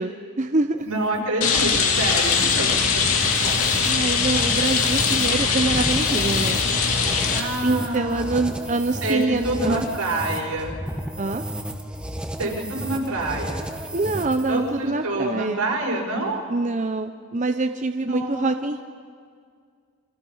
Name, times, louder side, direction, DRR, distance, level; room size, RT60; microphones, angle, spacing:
voice 1, 0.0-0.9 3.9-6.6 7.6-9.8 11.2-11.4 13.9-15.6 16.5-18.8, right 2 dB, 35° right, 7 dB, 0.7 m, -25 dB
sound 1, 0.8-14.7, right 1 dB, 5° right, 1.3 m, -34 dB
voice 2, 0.8-3.6 7.3-8.4 9.0-10.8 12.4-13.7 14.5-16.4 18.0-18.5, right 2 dB, 85° right, -2 dB, 5.5 m, -27 dB
Rain, 1.4-7.4, left 5 dB, 75° left, 2.6 m, -21 dB
28.5 x 26.5 x 5.6 m, 2.1 s
head